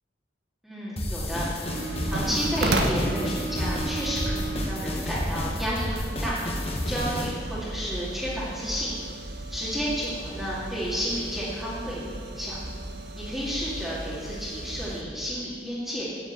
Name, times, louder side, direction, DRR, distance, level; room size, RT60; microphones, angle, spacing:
voice 1, 0.6-1.7 2.0-6.4 6.9-8.9 9.5-12.6 13.1-16.1, equal, ahead, -9 dB, 2.2 m, -31 dB
sound 1, 1.0-7.3, left 1 dB, 35° left, 1.4 m, -31 dB
sound 2, 1.7-15.0, right 1 dB, 65° right, 1.2 m, -34 dB
9.7 x 8.2 x 8.0 m, 2.2 s
head